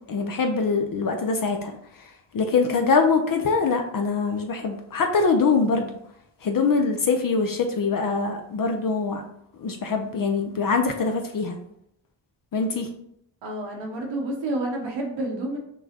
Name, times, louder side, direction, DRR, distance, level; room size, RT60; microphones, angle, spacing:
voice 1, 0.1-1.7 2.3-5.9 6.4-9.2 9.6-11.6 12.5-12.9, left 4 dB, 50° left, 4 dB, 0.6 m, -23 dB
voice 2, 13.4-15.6, right 1 dB, 85° right, 0 dB, 1.0 m, -29 dB
5.9 x 2.3 x 2.8 m, 0.74 s
supercardioid pair, 45°, 44 cm